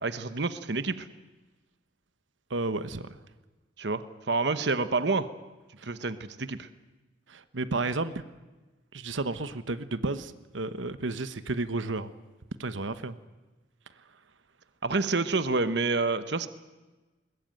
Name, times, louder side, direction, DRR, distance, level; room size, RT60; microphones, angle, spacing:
voice 1, 0.0-1.1 3.8-5.3 5.8-6.7 14.8-16.5, right 3 dB, 65° right, 11 dB, 1.0 m, -28 dB
voice 2, 2.5-3.2 5.8-5.9 7.3-8.1 8.9-12.1 12.6-13.2, right 2 dB, 90° right, 12 dB, 1.1 m, -32 dB
21.5 x 20.5 x 9.1 m, 1.2 s
head